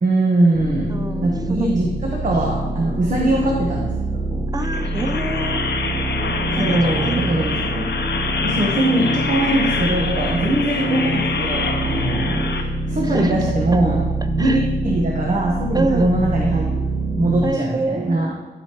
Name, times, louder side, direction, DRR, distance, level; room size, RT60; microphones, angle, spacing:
voice 1, 0.0-1.0 1.2-1.9 2.2-4.4 6.6-7.8 8.4-14.1 14.3-16.7 17.2-18.3, right 2 dB, 45° right, -2 dB, 1.1 m, -21 dB
sound 1, 0.5-17.5, right 1 dB, 80° right, 2.6 m, -25 dB
voice 2, 0.9-1.7 2.9-3.3 4.5-5.6 6.6-7.4 13.0-13.4 14.4-14.7 15.7-16.1 17.4-18.3, right 2 dB, 20° right, 8 dB, 0.5 m, -27 dB
sound 2, 4.6-12.6, left 5 dB, 80° left, 0.7 m, -26 dB
11.5 x 5.1 x 3.0 m, 1.3 s
wide cardioid pair, 100°, 18 cm